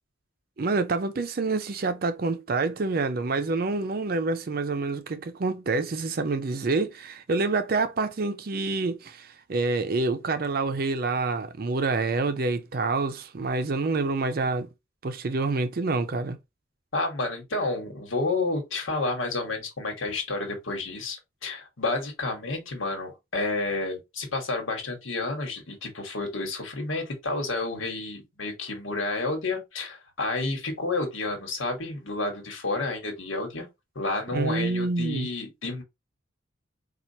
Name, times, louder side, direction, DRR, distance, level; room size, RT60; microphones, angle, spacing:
voice 1, 0.6-14.7 15.0-16.4 34.3-35.3, right 3 dB, 50° right, 0.5 m, -27 dB
voice 2, 16.9-33.7 33.9-35.8, left 2 dB, 90° left, 1.4 m, -30 dB
4.4 x 2.4 x 2.7 m
head